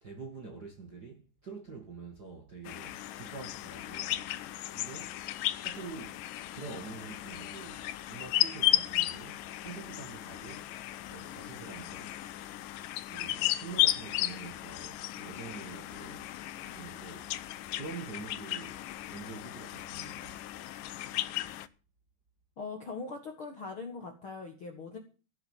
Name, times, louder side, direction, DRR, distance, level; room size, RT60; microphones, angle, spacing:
voice 1, 0.0-4.3 4.7-5.2 5.6-6.2 6.5-10.8 11.1-12.1 13.1-17.4 17.7-18.8 19.1-20.5, right 4 dB, 35° right, 1.7 m, -46 dB
sound 1, 2.6-21.7, left 14 dB, 90° left, 1.9 m, -35 dB
voice 2, 22.6-25.0, left 4 dB, 50° left, 1.7 m, -41 dB
16.0 x 7.6 x 7.5 m
omnidirectional pair, 4.8 m